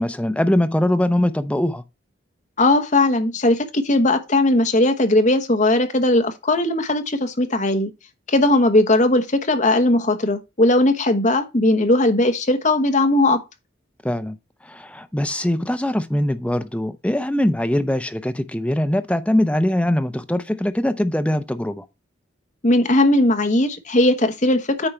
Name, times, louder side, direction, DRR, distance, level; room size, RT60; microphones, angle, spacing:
voice 1, 0.0-1.8 14.0-14.4 14.6-21.9, left 1 dB, 5° left, 0.6 m, -22 dB
voice 2, 2.6-7.9 8.3-13.4 22.6-24.9, left 2 dB, 40° left, 1.2 m, -18 dB
8.9 x 4.6 x 4.3 m
head